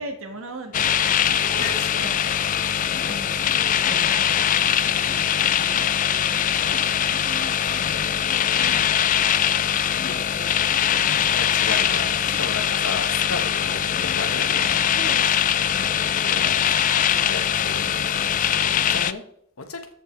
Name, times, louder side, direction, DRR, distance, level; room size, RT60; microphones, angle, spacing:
voice 1, 0.0-2.2 2.6-2.7 3.0-7.8 10.0-11.4 12.3-12.4 14.9-15.5 18.5-18.8, right 2 dB, 70° right, 5 dB, 1.5 m, -41 dB
sound 1, 0.7-19.1, left 9 dB, 40° left, 0.4 m, -22 dB
voice 2, 1.3-2.1 5.7-6.3 8.7-9.2 11.1-14.8 16.2-18.1 18.9-19.3 19.6-19.8, left 4 dB, 75° left, 6 dB, 1.3 m, -34 dB
14.0 x 5.4 x 3.3 m, 0.68 s
head